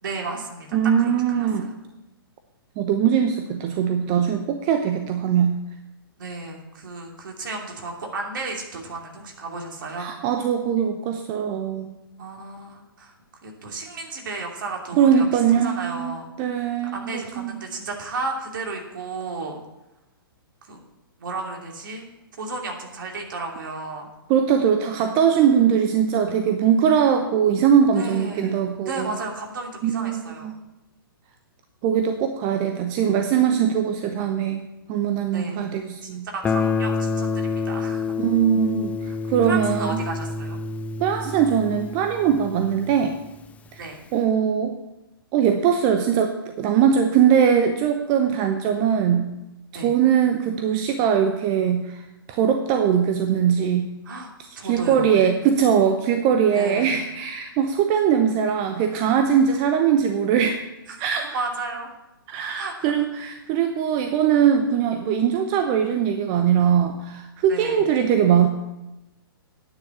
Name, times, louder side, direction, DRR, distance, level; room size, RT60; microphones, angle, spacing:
voice 1, 0.0-1.5 6.2-10.1 12.2-13.1 13.4-15.2 15.6-16.3 16.9-19.6 20.7-20.8 21.2-22.1 22.4-24.1 28.0-30.5 35.3-35.6 36.0-38.2 39.5-40.6 43.8-44.0 49.7-49.9 54.0-55.2 56.5-57.0 60.9-61.0 61.3-61.9 62.6-62.9 67.5-67.9, right 3 dB, 60° right, 1 dB, 2.8 m, -33 dB
voice 2, 0.7-1.7 2.8-5.5 10.0-11.9 15.0-17.5 24.3-29.1 29.8-30.1 30.4-30.5 31.8-34.6 34.9-36.3 38.2-40.0 41.0-43.2 43.7-43.8 44.1-44.8 45.3-49.2 49.7-53.9 54.4-60.6 61.0-61.4 62.3-68.5, right 8 dB, 30° right, 6 dB, 0.9 m, -21 dB
Guitar, 36.4-43.2, left 4 dB, 10° left, 0.4 m, -28 dB
9.9 x 6.6 x 8.4 m, 0.96 s
figure-of-eight pair, 120°, 12 cm